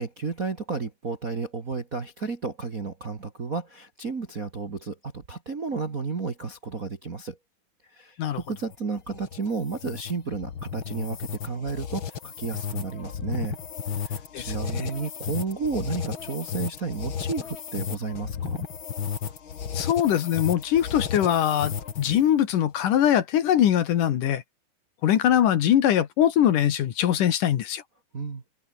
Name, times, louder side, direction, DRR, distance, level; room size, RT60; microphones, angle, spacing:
voice 1, 0.0-7.4 7.9-13.6 14.0-18.6 28.1-28.4, right 4 dB, 35° right, 1.5 m, -32 dB
sound 1, 8.4-22.2, left 7 dB, 45° left, 2.1 m, -34 dB
voice 2, 14.3-14.9 19.7-24.4 25.0-27.8, left 10 dB, 65° left, 2.9 m, -22 dB
open air
omnidirectional pair, 4.3 m